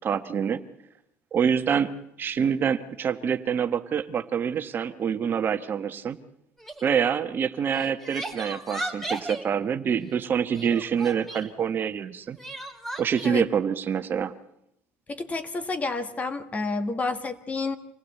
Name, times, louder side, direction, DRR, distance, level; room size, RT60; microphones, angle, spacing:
voice 1, 0.0-0.6 1.3-1.9 2.2-6.2 6.8-12.4 13.0-14.3, right 7 dB, 40° right, 9 dB, 1.1 m, -26 dB
Crying sobbing, 6.6-6.9 7.7-9.5 10.5-11.5 12.4-13.3, right 2 dB, 5° left, 3.0 m, -35 dB
voice 2, 15.1-17.8, left 3 dB, 25° left, 10 dB, 1.7 m, -29 dB
26.0 x 16.0 x 8.3 m, 0.82 s
supercardioid pair, 105°, 6 cm